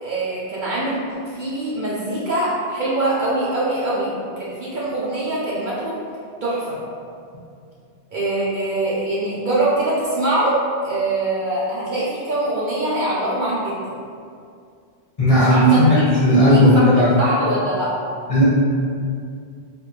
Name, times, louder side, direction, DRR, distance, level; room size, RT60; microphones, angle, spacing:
voice 1, 0.0-1.0 1.3-6.0 6.4-6.8 8.1-10.6 10.8-13.9 15.3-17.9, right 1 dB, 55° right, -7 dB, 0.6 m, -23 dB
voice 2, 15.2-17.1 18.3-18.4, equal, 35° left, -9 dB, 0.9 m, -14 dB
3.3 x 2.2 x 3.1 m, 2.3 s
omnidirectional pair, 1.1 m